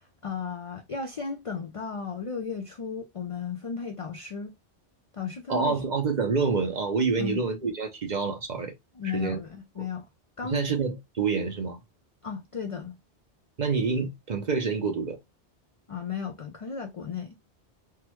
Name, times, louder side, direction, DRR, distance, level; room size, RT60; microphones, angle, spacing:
voice 1, 0.0-4.5 5.1-5.8 7.2-7.4 9.0-10.1 10.4-10.7 12.2-13.0 15.9-17.4, left 6 dB, 55° left, 0.3 m, -35 dB
voice 2, 5.5-8.7 9.0-9.4 10.5-11.8 13.6-15.2, right 4 dB, 45° right, 0.7 m, -27 dB
3.5 x 2.1 x 2.9 m
omnidirectional pair, 1.2 m